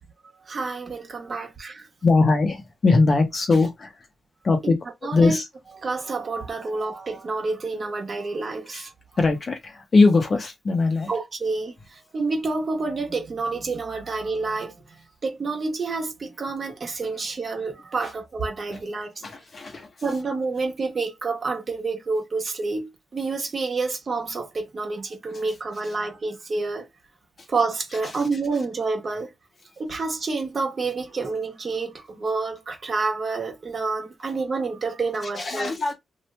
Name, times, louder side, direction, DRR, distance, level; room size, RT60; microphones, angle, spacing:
voice 1, 0.5-1.9 4.6-4.7 5.0-5.4 5.8-8.9 11.1-14.7 15.2-19.1 20.0-26.9 27.5-29.3 29.8-35.7, right 3 dB, 40° right, 1.1 m, -28 dB
voice 2, 2.0-3.9 4.4-4.8 5.1-5.5 8.7-8.9 9.2-11.1 18.7-18.8 19.2-19.9 35.3-35.9, left 3 dB, 40° left, 0.8 m, -21 dB
2.8 x 2.4 x 3.2 m
cardioid pair, 120°, 0 cm